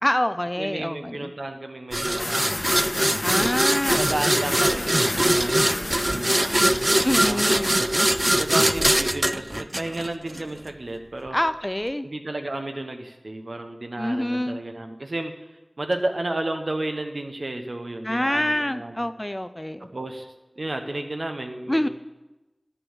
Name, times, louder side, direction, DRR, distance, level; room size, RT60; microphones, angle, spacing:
voice 1, 0.0-1.3 3.2-4.1 7.0-7.8 11.3-12.1 14.0-14.6 18.0-19.9 21.7-21.9, left 1 dB, 25° left, 12 dB, 0.5 m, -26 dB
voice 2, 0.6-3.3 4.0-7.6 8.3-11.4 12.0-15.3 15.8-19.1 19.8-21.9, right 2 dB, 85° right, 5 dB, 1.0 m, -32 dB
sound 1, 1.9-10.4, right 1 dB, 30° right, 0.4 m, -22 dB
sound 2, 2.2-8.9, left 1 dB, 75° left, 1.4 m, -33 dB
11.0 x 6.9 x 7.3 m, 1.0 s
wide cardioid pair, 45°, 0 cm